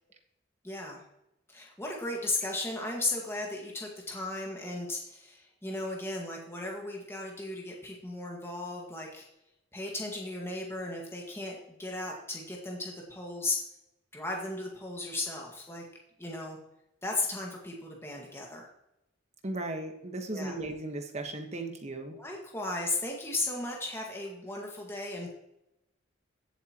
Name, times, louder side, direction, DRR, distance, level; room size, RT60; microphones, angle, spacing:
voice 1, 0.6-1.0 1.5-9.3 9.7-13.6 14.1-15.8 16.2-16.6 17.0-18.7 20.3-20.6 22.1-25.3, left 2 dB, 10° left, -1 dB, 1.7 m, -36 dB
voice 2, 19.4-22.2, right 2 dB, 35° right, 4 dB, 1.4 m, -36 dB
15.5 x 8.1 x 3.0 m, 0.86 s
head